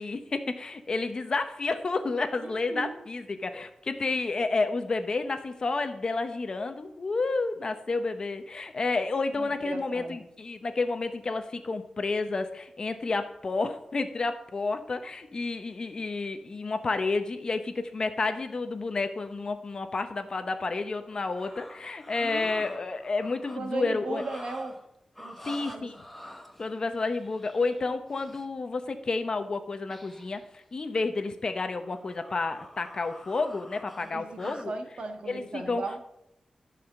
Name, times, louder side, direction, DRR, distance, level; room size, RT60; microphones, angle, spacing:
voice 1, 0.0-24.2 25.4-25.9 26.6-34.7 35.3-35.8, left 3 dB, 40° left, 8 dB, 0.8 m, -30 dB
voice 2, 2.4-3.0 9.3-10.2 22.2-22.6 23.6-24.7 25.2-25.9 34.1-36.0, right 3 dB, 55° right, 5 dB, 1.5 m, -37 dB
sound 1, 21.1-23.6 24.0-24.9 25.1-28.5 29.9-30.5 30.8-31.0 31.5-34.7, left 1 dB, 5° left, 1.0 m, -47 dB
14.5 x 5.0 x 7.1 m, 0.83 s
wide cardioid pair, 180°, 2 cm